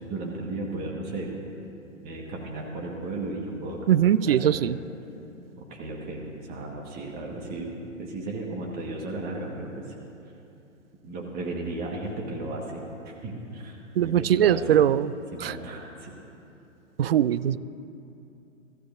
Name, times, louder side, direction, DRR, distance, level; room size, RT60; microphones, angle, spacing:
voice 1, 0.1-1.4 2.0-3.8 4.3-4.7 5.5-10.0 11.0-14.8 15.3-16.2, right 2 dB, 25° right, -1 dB, 1.5 m, -35 dB
voice 2, 3.9-4.7 14.0-15.1 15.4-15.5 17.0-17.6, right 10 dB, 50° right, 16 dB, 0.4 m, -21 dB
23.0 x 14.0 x 2.6 m, 2.8 s
figure-of-eight pair, 120°, 39 cm